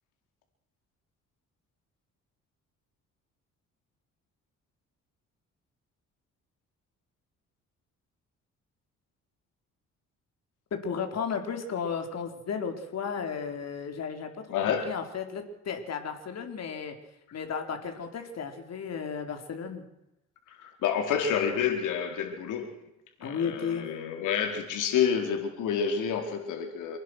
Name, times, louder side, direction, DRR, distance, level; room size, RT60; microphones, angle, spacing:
voice 1, 10.8-14.3 14.6-16.9 17.3-19.8 23.2-23.9, left 6 dB, 60° left, 5 dB, 4.3 m, -34 dB
voice 2, 14.5-14.9 20.5-22.8 23.2-27.0, left 7 dB, 85° left, 4 dB, 4.1 m, -29 dB
27.5 x 19.5 x 6.3 m, 0.86 s
cardioid pair, 90°, 30 cm